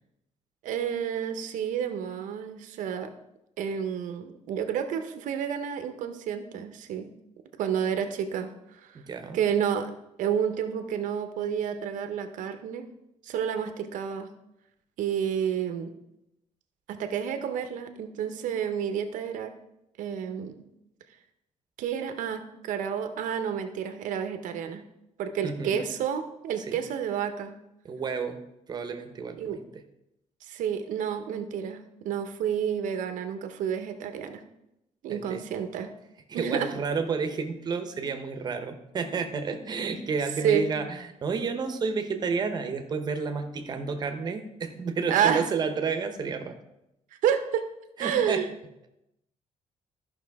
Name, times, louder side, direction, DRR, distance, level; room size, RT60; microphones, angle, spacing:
voice 1, 0.6-3.1 3.6-7.1 7.5-9.0 9.3-9.9 10.2-12.9 13.2-14.3 15.0-15.9 16.9-19.5 20.0-20.6 21.8-24.8 25.2-27.5 29.4-29.6 30.4-34.4 35.0-35.9 36.3-36.7 40.4-40.7 45.1-45.5 47.2-47.6 48.0-48.5, right 8 dB, 90° right, 8 dB, 0.9 m, -30 dB
voice 2, 8.9-9.4 25.4-25.9 26.6-26.8 27.8-28.4 28.7-29.6 35.1-35.4 36.3-46.6 48.0-48.4, right 5 dB, 30° right, 7 dB, 0.9 m, -31 dB
13.5 x 5.6 x 3.5 m, 0.87 s
cardioid pair, 165°, 13 cm